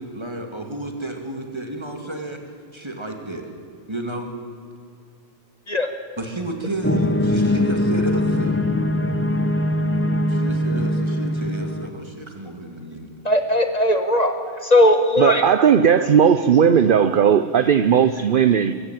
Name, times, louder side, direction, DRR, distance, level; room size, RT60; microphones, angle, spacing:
voice 1, 0.0-2.4 2.7-3.5 3.9-4.3 6.2-8.6 10.3-13.1, right 1 dB, 20° right, 3 dB, 2.5 m, -31 dB
sound 1, 6.8-11.9, left 1 dB, 15° left, 0.7 m, -21 dB
voice 2, 13.2-14.3 14.6-15.4, left 1 dB, 35° left, 6 dB, 1.3 m, -18 dB
voice 3, 15.2-18.7, right 8 dB, 55° right, 12 dB, 0.7 m, -16 dB
22.5 x 14.5 x 9.1 m, 2.3 s
omnidirectional pair, 1.2 m